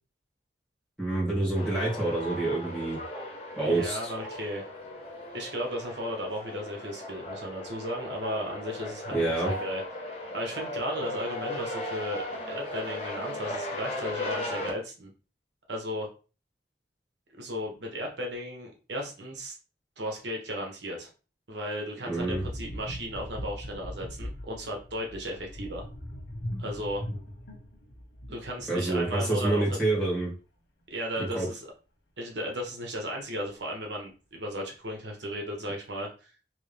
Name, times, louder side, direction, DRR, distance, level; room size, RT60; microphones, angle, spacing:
voice 1, 1.0-3.0 3.6-4.1 9.1-9.5 22.1-22.4 28.7-30.3 31.4-31.5, right 2 dB, 5° left, -6 dB, 2.1 m, -27 dB
sound 1, 1.5-14.7, left 1 dB, 35° left, 1.1 m, -37 dB
voice 2, 3.6-4.7 5.3-9.8 10.3-15.1 15.7-16.1 17.4-19.5 20.0-21.1 21.5-25.8 26.6-27.0 28.3-29.8 30.9-31.7 32.2-36.3, equal, 75° right, 0 dB, 1.3 m, -35 dB
sound 2, 22.2-29.6 29.8-30.1, equal, 85° left, 1.3 m, -40 dB
3.6 x 3.1 x 3.4 m, 0.34 s
head